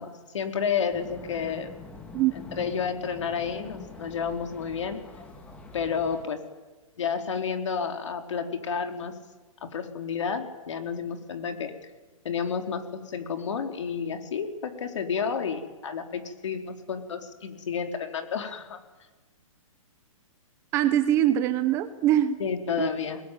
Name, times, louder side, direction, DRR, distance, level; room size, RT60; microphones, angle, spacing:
voice 1, 0.0-1.7 2.4-5.0 5.7-6.4 7.0-9.1 9.6-11.7 12.2-18.8 22.4-23.2, left 6 dB, 60° left, 6 dB, 4.0 m, -31 dB
sound 1, 0.9-6.2, left 3 dB, 5° left, 2.1 m, -45 dB
voice 2, 20.7-22.4 22.8-22.9, right 11 dB, 15° right, 12 dB, 0.8 m, -23 dB
30.0 x 21.0 x 9.3 m, 1.2 s
hypercardioid pair, 170°, 17 cm